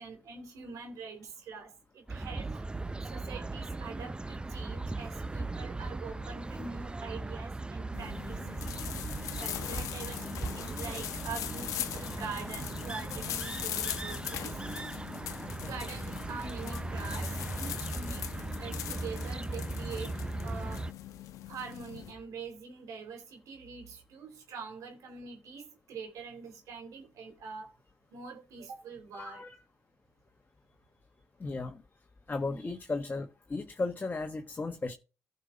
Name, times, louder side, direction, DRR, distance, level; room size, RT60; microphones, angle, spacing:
voice 1, 0.0-2.7 3.0-8.6 9.4-14.6 15.6-18.2 18.6-20.2 20.4-20.9 21.5-27.7 28.1-29.4 32.4-32.6, right 5 dB, 80° right, 3.4 m, -44 dB
sound 1, 2.1-20.9, right 2 dB, 15° right, 0.6 m, -38 dB
sound 2, 7.9-22.1, left 12 dB, 85° left, 1.0 m, -40 dB
voice 2, 29.1-29.5 31.4-31.8 32.3-34.9, left 3 dB, 35° left, 1.4 m, -35 dB
15.5 x 5.6 x 3.8 m
supercardioid pair, 60°, 6 cm